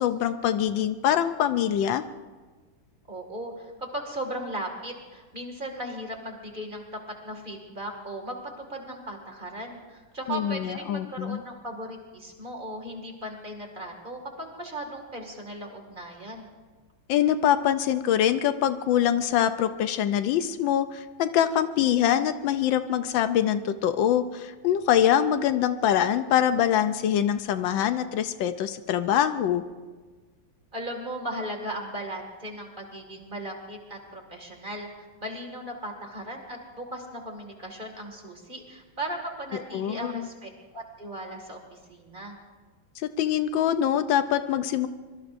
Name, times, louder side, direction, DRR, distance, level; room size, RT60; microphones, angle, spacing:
voice 1, 0.0-2.0 10.3-11.4 17.1-29.6 39.7-40.3 43.0-44.9, left 10 dB, 80° left, 11 dB, 1.4 m, -24 dB
voice 2, 3.1-6.8 7.2-16.5 30.7-34.9 35.2-42.4, right 1 dB, 25° right, 2 dB, 2.2 m, -37 dB
24.5 x 22.5 x 2.6 m, 1.4 s
omnidirectional pair, 2.1 m